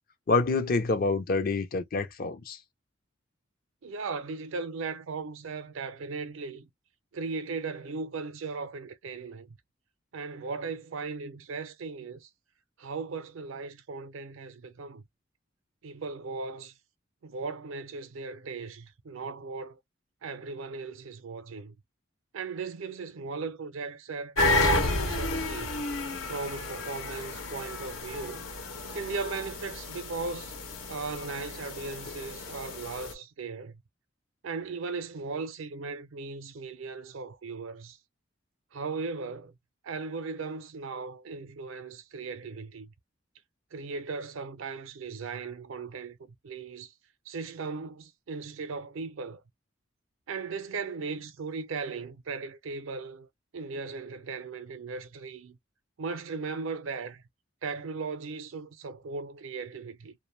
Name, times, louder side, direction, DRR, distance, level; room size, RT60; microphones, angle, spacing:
voice 1, 0.3-2.6, left 3 dB, 50° left, 0.6 m, -27 dB
voice 2, 3.8-6.7 7.1-9.6 10.1-12.3 12.8-15.0 15.8-16.7 17.2-19.8 20.2-21.8 22.3-25.9 26.3-28.5 28.9-30.5 30.9-33.8 34.4-38.0 38.7-39.5 39.8-42.9 43.7-46.9 47.3-49.4 50.3-55.6 56.0-57.2 57.6-60.1, right 4 dB, 75° right, 0.5 m, -37 dB
sound 1, 24.4-33.1, left 2 dB, 85° left, 1.0 m, -31 dB
2.5 x 2.1 x 3.2 m
head